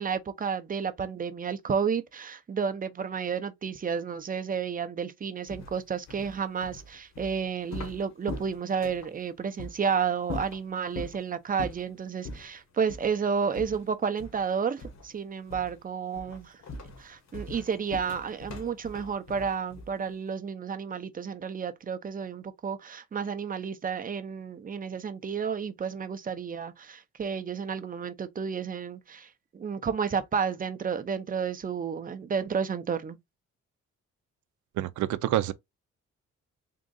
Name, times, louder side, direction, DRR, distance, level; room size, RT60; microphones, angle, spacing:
voice 1, 0.0-16.6 17.0-33.2, right 6 dB, 30° right, 0.6 m, -31 dB
sound 1, 5.5-9.1 9.6-9.8 10.2-11.2 11.6-11.9 12.2-12.5 12.9-13.1 13.5-14.5 14.8-15.2 15.5-15.8 16.1-20.1, left 2 dB, 60° left, 1.4 m, -41 dB
voice 2, 34.8-35.5, right 13 dB, 75° right, 0.6 m, -27 dB
3.7 x 2.5 x 3.8 m
cardioid pair, 90°, 30 cm